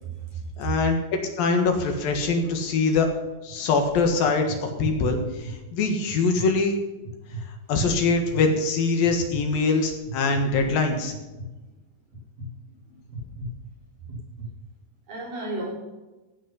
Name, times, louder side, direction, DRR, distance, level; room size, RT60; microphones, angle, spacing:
voice 1, 0.0-0.7 3.6-3.7 12.6-13.0 15.1-15.7, right 4 dB, 60° right, -3 dB, 5.8 m, -34 dB
voice 2, 0.6-1.0 1.4-3.1 3.4-6.7 7.7-11.1, left 4 dB, 70° left, 4 dB, 3.4 m, -23 dB
sound 1, 3.5-3.6 4.1-4.6 5.1-5.5 6.0-6.5 7.0-7.5 8.0-8.5 9.0-9.4 10.1-10.4 11.1-11.5 12.1-12.5 13.1-13.5 14.0-14.5, right 3 dB, 85° right, 5.3 m, -37 dB
15.5 x 8.9 x 5.6 m, 1.1 s
omnidirectional pair, 4.3 m